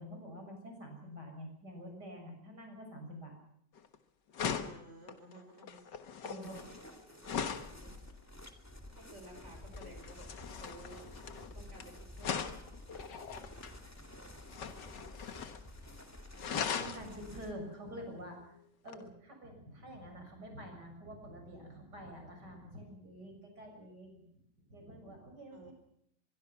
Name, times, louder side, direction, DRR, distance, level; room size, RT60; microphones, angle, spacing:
voice 1, 0.0-3.4 6.2-7.4 16.4-24.2 24.7-25.7, equal, 65° right, 3 dB, 7.4 m, -48 dB
sound 1, 3.8-4.0 4.3-7.8 9.7-11.8 12.2-13.8 14.5-15.7 15.9-16.0 16.3-17.1 18.9-19.0, left 7 dB, 75° left, 2.0 m, -39 dB
voice 2, 4.6-5.9 6.4-6.7 7.8-8.0 8.9-11.1 11.5-12.5 25.5-25.7, right 1 dB, 40° right, 4 dB, 6.1 m, -54 dB
sound 2, 6.4-17.5, left 1 dB, 10° left, 2.4 m, -51 dB
24.5 x 22.0 x 6.0 m, 0.70 s
omnidirectional pair, 1.9 m